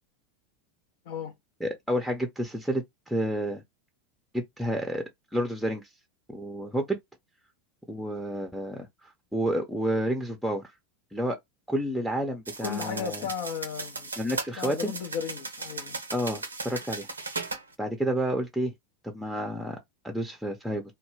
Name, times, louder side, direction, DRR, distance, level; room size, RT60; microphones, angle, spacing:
voice 1, 1.6-3.6 4.3-5.0 5.3-5.9 6.3-7.0 7.9-10.7 11.1-11.4 11.7-13.2 14.2-14.9 16.1-17.1 17.8-18.7 19.0-19.8 20.0-20.8, equal, ahead, 0.6 m, -30 dB
sound 1, 12.5-17.6, right 3 dB, 90° right, 0.5 m, -37 dB
voice 2, 12.6-14.1 14.5-16.0, left 7 dB, 60° left, 0.5 m, -34 dB
2.1 x 2.0 x 3.2 m
figure-of-eight pair, 85°, 0 cm